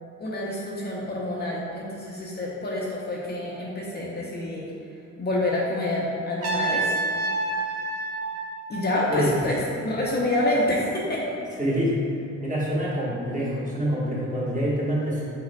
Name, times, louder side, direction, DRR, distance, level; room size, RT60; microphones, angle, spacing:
voice 1, 0.2-4.7 5.2-7.0 8.7-11.4, left 1 dB, 35° left, -4 dB, 0.6 m, -27 dB
Trumpet, 6.4-9.4, right 2 dB, 50° right, 0.8 m, -29 dB
voice 2, 11.6-12.0 12.4-15.2, equal, 25° right, -7 dB, 1.3 m, -26 dB
4.7 x 4.2 x 2.2 m, 2.4 s
cardioid pair, 90°, 30 cm